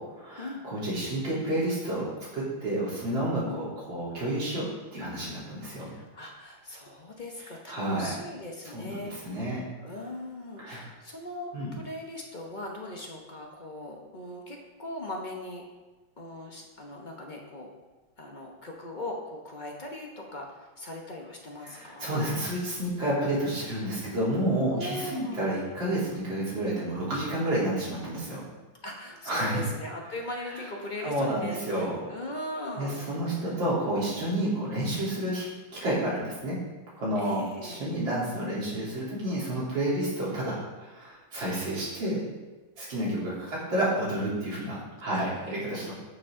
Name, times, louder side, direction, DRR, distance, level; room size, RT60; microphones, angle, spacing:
voice 1, 0.2-2.1 2.3-4.7 4.9-5.9 7.7-8.1 8.7-9.7 10.6-10.9 11.5-11.7 21.7-28.4 29.3-29.6 31.0-32.0 32.8-35.5 35.7-36.6 37.0-42.2 42.8-45.9, right 1 dB, 60° right, -8 dB, 4.1 m, -30 dB
voice 2, 5.8-15.6 16.2-17.7 18.2-22.3 24.7-25.4 28.8-33.1 37.2-37.8 42.9-43.5 45.1-45.2 45.8-45.9, left 1 dB, 40° left, 0 dB, 0.7 m, -40 dB
11.5 x 6.7 x 3.7 m, 1.2 s
omnidirectional pair, 2.3 m